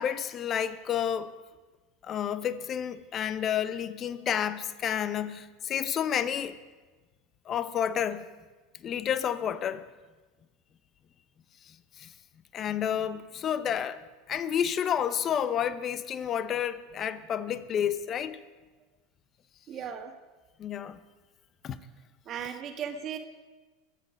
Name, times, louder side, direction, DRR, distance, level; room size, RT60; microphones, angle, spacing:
voice 1, 0.0-1.3 2.0-6.6 7.5-8.3 8.8-9.9 11.7-12.1 12.5-14.0 14.3-18.4 20.6-21.0 21.6-21.8, left 9 dB, 40° left, 0.8 m, -30 dB
voice 2, 19.7-20.1 22.3-23.2, right 8 dB, 40° right, 1.7 m, -36 dB
22.0 x 8.3 x 5.3 m
hypercardioid pair, 100°, 0 cm